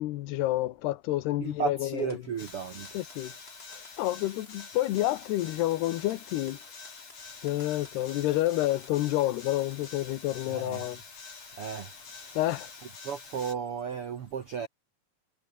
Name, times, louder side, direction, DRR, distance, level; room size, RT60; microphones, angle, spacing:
voice 1, 0.0-2.1 2.9-3.3 4.0-6.6 7.4-11.0 12.4-12.7, left 16 dB, 85° left, 3.1 m, -29 dB
voice 2, 1.4-3.0 10.5-10.8 11.5-11.9 12.2-12.4 13.0-14.7, right 7 dB, 70° right, 1.4 m, -34 dB
sound 1, 2.0-9.9, left 1 dB, 15° left, 7.8 m, -57 dB
sound 2, 2.4-13.5, left 4 dB, 40° left, 5.9 m, -46 dB
omnidirectional pair, 4.6 m